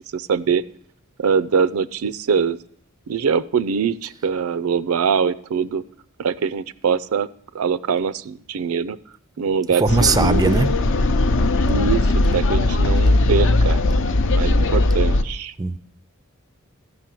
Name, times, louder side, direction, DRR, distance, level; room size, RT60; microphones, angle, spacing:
voice 1, 0.1-0.6 1.2-2.6 3.1-5.8 6.2-7.3 7.5-9.0 9.4-10.6 11.7-13.8 14.3-15.5, right 6 dB, 75° right, 15 dB, 0.4 m, -23 dB
voice 2, 9.8-10.7 15.6-15.8, right 3 dB, 20° right, 14 dB, 0.4 m, -19 dB
sound 1, 9.9-15.2, left 2 dB, 60° left, 0.6 m, -18 dB
13.5 x 6.2 x 7.5 m, 0.67 s
head